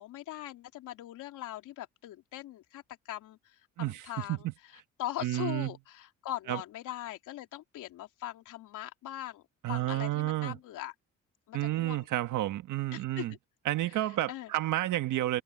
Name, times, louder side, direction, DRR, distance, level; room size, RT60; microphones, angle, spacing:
voice 1, 0.0-4.5 5.0-10.9 11.5-12.0 12.9-13.2 13.9-14.5, left 13 dB, 90° left, 3.4 m, -41 dB
voice 2, 5.2-5.7 6.5-6.6 9.6-10.6 11.5-13.3 13.6-15.4, right 15 dB, 80° right, 1.5 m, -30 dB
cardioid pair, 90°, 30 cm